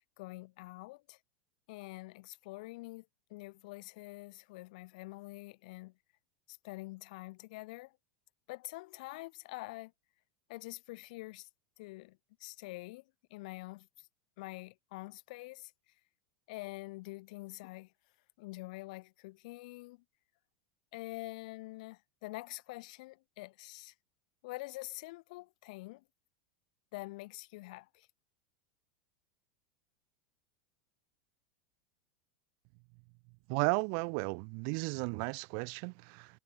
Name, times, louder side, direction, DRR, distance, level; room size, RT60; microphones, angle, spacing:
voice 1, 0.2-1.2 1.7-5.9 6.5-8.0 8.5-9.9 10.5-11.5 11.8-14.1 14.4-15.7 16.5-17.9 18.4-20.0 20.9-23.9 24.4-26.0 26.9-28.1, left 22 dB, 65° left, 0.7 m, -46 dB
voice 2, 33.5-36.3, right 40 dB or more, 55° right, 0.4 m, -34 dB
hypercardioid pair, 95°, 4 cm